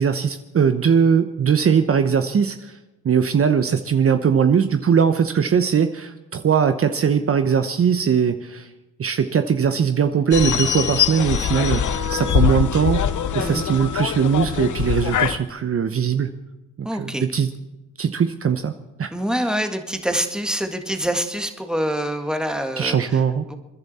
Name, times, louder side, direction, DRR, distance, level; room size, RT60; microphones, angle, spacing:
voice 1, 0.0-2.8 3.0-8.7 9.0-11.8 12.1-13.1 13.3-16.3 16.8-17.5 18.0-18.7 19.0-19.1 22.8-23.5, right 7 dB, 45° right, 9 dB, 0.9 m, -20 dB
sound 1, 10.3-15.4, left 9 dB, 60° left, 1.0 m, -22 dB
voice 2, 16.8-17.3 19.1-23.2 23.5-23.6, equal, ahead, 6 dB, 1.7 m, -25 dB
29.0 x 11.0 x 4.3 m, 1.0 s
cardioid pair, 85°, 33 cm